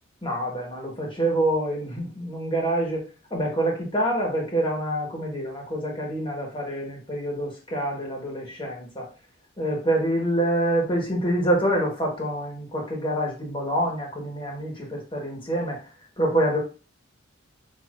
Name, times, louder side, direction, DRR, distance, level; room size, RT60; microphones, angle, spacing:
voice 1, 0.2-9.1 9.6-15.8 16.2-16.6, right 1 dB, 20° left, 0 dB, 1.3 m, -26 dB
6.3 x 2.8 x 2.5 m, 0.34 s
head